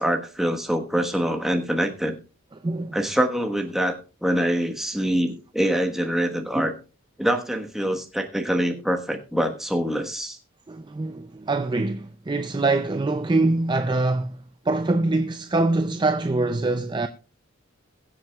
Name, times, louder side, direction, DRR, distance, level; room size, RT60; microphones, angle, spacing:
voice 1, 0.0-2.2 2.9-6.7 7.2-10.4, equal, ahead, 1.2 m, -25 dB
voice 2, 2.6-3.0 10.7-17.1, right 2 dB, 20° right, 0.4 m, -24 dB
21.5 x 7.5 x 2.3 m
head